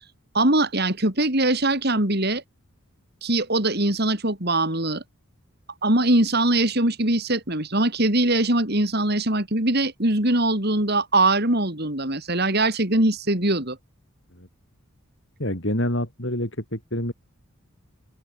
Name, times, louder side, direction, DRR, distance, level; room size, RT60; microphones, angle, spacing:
voice 1, 0.3-2.4 3.2-5.0 5.8-13.8, right 2 dB, 45° right, 4.3 m, -22 dB
voice 2, 15.4-17.1, left 1 dB, 55° left, 6.5 m, -27 dB
open air
head